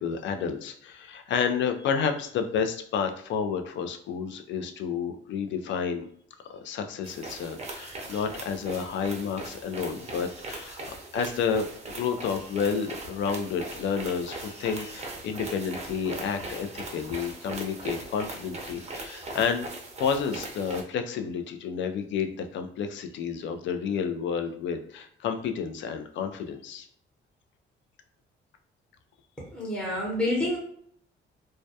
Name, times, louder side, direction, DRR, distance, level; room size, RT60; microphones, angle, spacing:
voice 1, 0.0-6.1 6.5-19.7 20.0-26.9, left 6 dB, 70° left, 7 dB, 0.4 m, -30 dB
sound 1, 7.0-20.8, right 2 dB, 35° right, 0.5 m, -40 dB
voice 2, 29.5-30.6, left 1 dB, 5° left, -4 dB, 0.8 m, -28 dB
2.2 x 2.2 x 2.6 m, 0.63 s
cardioid pair, 90°, 20 cm